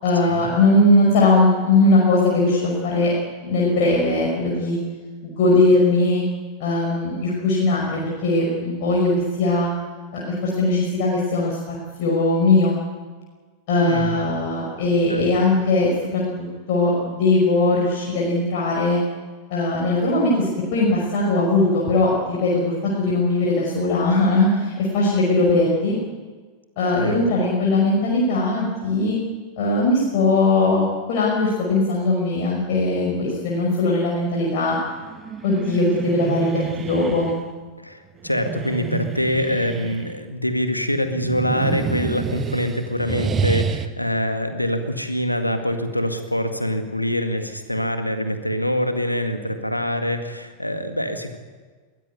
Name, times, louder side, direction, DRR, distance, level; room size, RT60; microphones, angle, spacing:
voice 1, 0.0-3.1 3.4-4.8 5.2-6.2 6.6-9.7 10.1-12.7 13.7-19.0 19.5-26.0 26.8-29.2 29.6-34.8 35.4-37.3, left 2 dB, 50° left, -3 dB, 5.5 m, -20 dB
voice 2, 13.7-14.4 15.1-15.2 27.0-27.3 37.8-51.4, left 1 dB, 90° left, 7 dB, 2.0 m, -25 dB
sound 1, 35.0-37.4 38.2-40.2 41.0-43.9, right 6 dB, 25° right, 1.3 m, -28 dB
22.0 x 16.5 x 9.7 m, 1.4 s
figure-of-eight pair, 90°, 0 cm